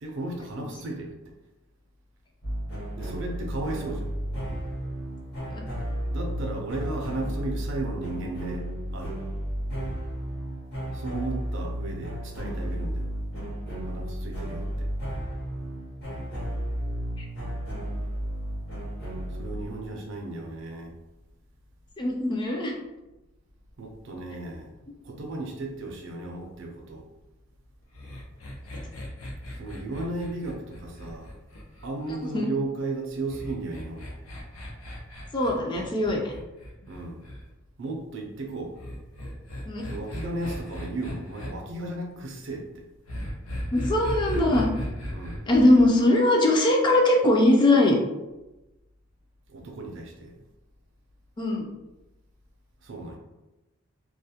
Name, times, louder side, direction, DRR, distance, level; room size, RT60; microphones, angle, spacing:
voice 1, 0.0-1.3 3.0-4.1 6.1-9.2 10.9-13.1 13.8-14.9 19.3-21.0 23.8-24.7 25.0-27.0 29.5-31.3 31.8-34.2 36.9-37.2 37.8-38.7 39.8-42.8 45.1-45.4 49.5-50.3 52.8-53.2, right 2 dB, 60° right, 1 dB, 0.4 m, -35 dB
sound 1, 2.4-19.7, equal, 50° left, 0.8 m, -33 dB
voice 2, 22.0-22.7 32.3-32.5 35.3-36.3 39.6-39.8 43.7-44.7 45.5-48.0 51.4-51.7, left 1 dB, 20° left, 0 dB, 0.3 m, -21 dB
sound 2, 27.9-32.3 33.3-37.4 38.8-41.5 43.1-45.9, equal, 80° left, 0.6 m, -36 dB
2.3 x 2.0 x 2.7 m, 1.0 s
head